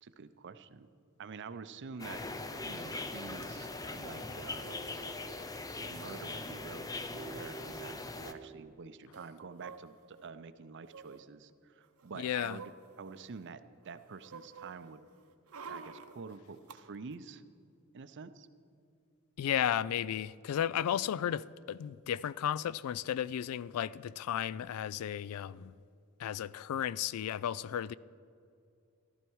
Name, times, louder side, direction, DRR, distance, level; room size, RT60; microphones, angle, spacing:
voice 1, 0.0-0.9 1.2-2.3 2.5-4.8 5.9-12.7 13.0-15.0 15.7-17.4 17.9-18.5, right 5 dB, 55° right, 0.5 m, -47 dB
sound 1, 2.0-8.3, left 2 dB, 15° left, 0.5 m, -41 dB
sound 2, 3.3-8.8, right 3 dB, 40° right, 0.9 m, -51 dB
sound 3, 3.4-3.5 4.5-5.0 5.3-5.4 5.6-6.2 7.0-7.1 7.3-7.5 9.1-10.3 10.8-11.2 11.8-13.5 13.9-16.8 17.1-17.2, right 5 dB, 85° right, 0.8 m, -51 dB
voice 2, 12.2-12.6 19.4-25.7 26.2-27.9, left 10 dB, 80° left, 0.3 m, -34 dB
14.5 x 12.0 x 4.6 m
head